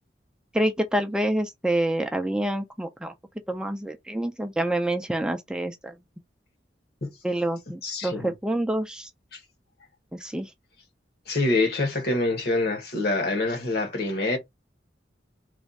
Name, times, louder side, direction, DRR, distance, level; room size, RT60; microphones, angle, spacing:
voice 1, 0.5-3.1 3.5-6.0 7.2-9.1 10.1-10.5, right 1 dB, 5° right, 0.4 m, -27 dB
voice 2, 7.8-8.3 9.3-9.4 11.3-14.4, left 2 dB, 60° left, 1.3 m, -25 dB
3.3 x 2.3 x 4.0 m
head